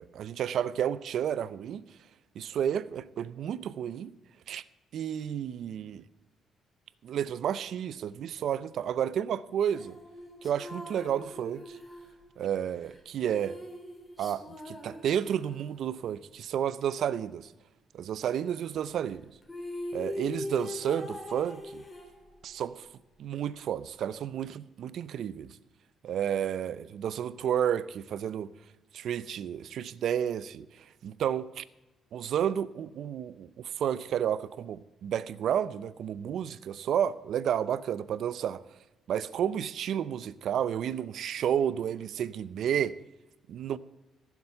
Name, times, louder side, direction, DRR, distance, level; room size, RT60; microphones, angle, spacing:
voice 1, 0.0-1.8 2.4-4.1 4.5-4.6 4.9-6.0 7.0-10.0 10.4-11.8 12.4-13.6 14.2-17.5 17.9-19.3 19.9-21.8 22.4-22.9 23.2-25.5 26.0-28.5 28.9-30.7 31.0-31.6 32.1-38.6 39.1-43.0 43.5-43.8, right 9 dB, 70° right, 0.6 m, -31 dB
sound 1, 9.7-15.9 19.1-19.2 19.4-22.6, left 1 dB, 20° left, 3.3 m, -42 dB
15.0 x 7.3 x 7.8 m
cardioid pair, 90°, 0 cm